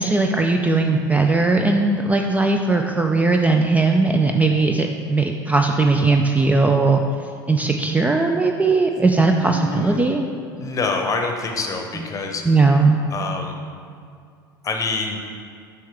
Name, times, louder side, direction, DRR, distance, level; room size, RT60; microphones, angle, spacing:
voice 1, 0.0-7.0 7.5-10.3 12.0-12.1 12.5-13.0, right 3 dB, 10° right, 3 dB, 0.4 m, -18 dB
voice 2, 9.3-10.0 10.6-12.4 13.1-13.6 14.6-15.2, left 3 dB, 30° left, 3 dB, 0.9 m, -26 dB
7.6 x 5.5 x 3.4 m, 2.2 s
figure-of-eight pair, 75°, 12 cm